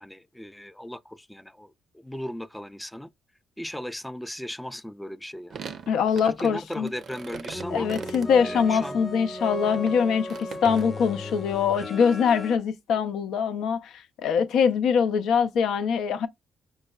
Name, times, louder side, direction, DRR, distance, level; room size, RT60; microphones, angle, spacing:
voice 1, 0.0-3.1 3.6-5.6 6.2-7.9 8.4-9.0, equal, 5° left, 0.3 m, -37 dB
sound 1, 5.5-9.0 9.5-10.8, right 6 dB, 60° right, 0.5 m, -40 dB
voice 2, 5.9-6.9 7.7-16.3, left 7 dB, 80° left, 0.4 m, -23 dB
sound 2, 7.5-12.6, left 1 dB, 25° left, 0.7 m, -35 dB
5.2 x 2.1 x 2.3 m
cardioid pair, 90°, 0 cm